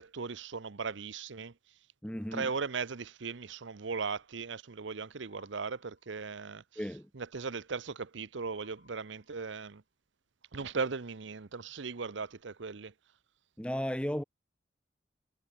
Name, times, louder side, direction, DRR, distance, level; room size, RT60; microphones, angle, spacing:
voice 1, 0.0-1.5 2.3-6.6 7.1-9.8 10.5-12.9, right 5 dB, 80° right, 0.8 m, -38 dB
voice 2, 2.0-2.5 6.8-7.1 13.6-14.2, equal, 5° left, 1.0 m, -35 dB
sound 1, 2.2-3.5 5.3-6.5 8.5-9.7, left 3 dB, 55° left, 6.1 m, -65 dB
head